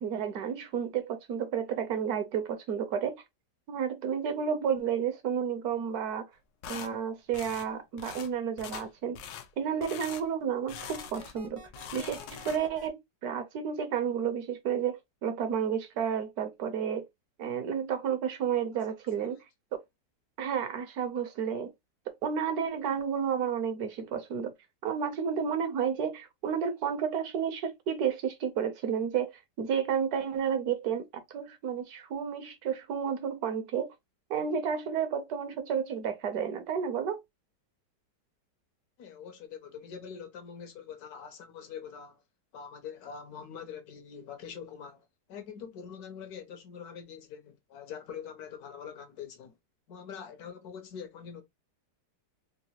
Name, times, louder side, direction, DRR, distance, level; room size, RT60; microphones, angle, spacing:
voice 1, 0.0-3.2 3.7-6.3 6.7-9.2 9.6-11.6 11.9-17.1 17.4-19.4 19.7-19.8 20.4-21.7 22.1-24.5 24.8-29.3 29.6-33.9 34.3-37.2, right 7 dB, 65° right, 1.1 m, -31 dB
sound 1, 6.6-6.9 7.3-7.7 8.0-8.3 8.6-8.9 9.1-9.5 9.8-10.2 10.7-11.4 11.7-12.8, left 8 dB, 90° left, 1.3 m, -43 dB
sound 2, 10.7-12.9, right 2 dB, 35° right, 0.5 m, -49 dB
voice 2, 39.0-42.2 42.5-49.5 49.9-51.4, left 7 dB, 70° left, 1.1 m, -44 dB
3.8 x 2.5 x 2.8 m
omnidirectional pair, 1.9 m